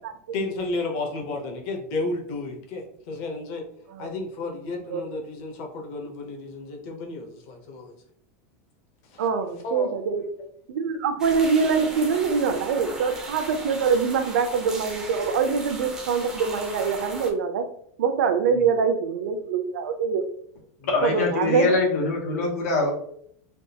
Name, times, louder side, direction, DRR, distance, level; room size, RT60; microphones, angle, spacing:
voice 1, 0.3-3.6 4.0-8.0 9.1-9.3 9.6-10.0 18.5-18.8 20.8-20.9, left 2 dB, 40° left, 2 dB, 0.7 m, -32 dB
voice 2, 9.2-10.2 10.7-17.6 18.0-20.2 21.0-21.8, right 5 dB, 90° right, 7 dB, 0.5 m, -24 dB
sound 1, 11.2-17.3, right 2 dB, 5° right, 0.4 m, -37 dB
voice 3, 20.9-22.9, left 3 dB, 90° left, 0 dB, 0.9 m, -23 dB
3.4 x 2.3 x 2.7 m, 0.66 s
supercardioid pair, 180°, 8 cm